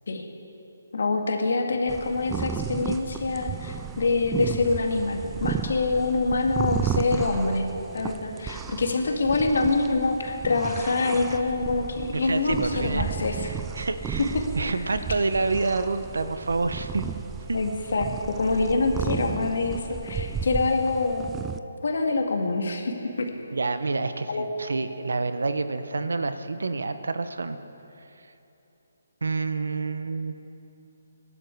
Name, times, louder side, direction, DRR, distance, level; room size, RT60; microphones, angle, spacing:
voice 1, 0.9-7.6 7.9-13.4 14.3-14.4 17.5-21.3 21.8-23.3 24.3-24.5, left 3 dB, 65° left, 3 dB, 2.1 m, -25 dB
sound 1, 1.9-21.6, right 7 dB, 10° right, 0.3 m, -34 dB
voice 2, 12.1-13.1 13.4-17.1 17.5-17.6 23.5-27.6 29.2-30.3, right 3 dB, 90° right, 10 dB, 1.0 m, -28 dB
23.5 x 11.5 x 4.7 m, 3.0 s
hypercardioid pair, 170°, 0 cm